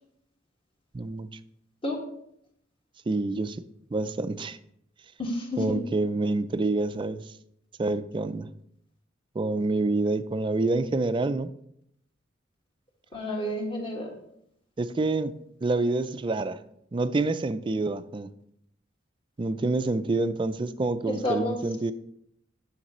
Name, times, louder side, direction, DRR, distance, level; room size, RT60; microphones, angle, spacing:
voice 1, 0.9-1.4 3.1-3.6 3.9-4.6 5.6-7.3 7.8-8.5 9.4-11.5 14.8-16.6 16.9-18.3 19.4-21.9, right 2 dB, 25° right, 0.3 m, -27 dB
voice 2, 5.2-5.8 13.1-14.1 21.1-21.6, left 1 dB, 30° left, 1.6 m, -30 dB
9.9 x 6.6 x 3.0 m
head